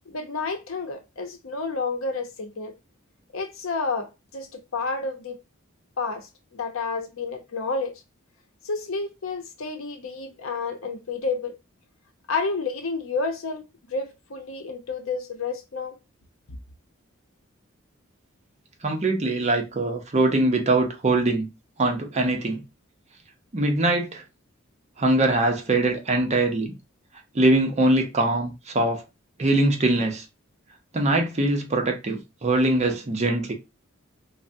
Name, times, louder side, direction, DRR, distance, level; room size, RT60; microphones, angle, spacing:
voice 1, 0.1-2.7 3.3-5.3 6.0-7.9 8.6-11.5 12.3-13.6 13.9-16.0, left 4 dB, 80° left, 0.6 m, -30 dB
voice 2, 18.8-21.5 21.8-22.6 23.5-24.2 25.0-26.7 27.3-29.0 29.4-30.2 30.9-33.5, right 2 dB, 35° right, 0.6 m, -22 dB
3.3 x 2.0 x 2.6 m
head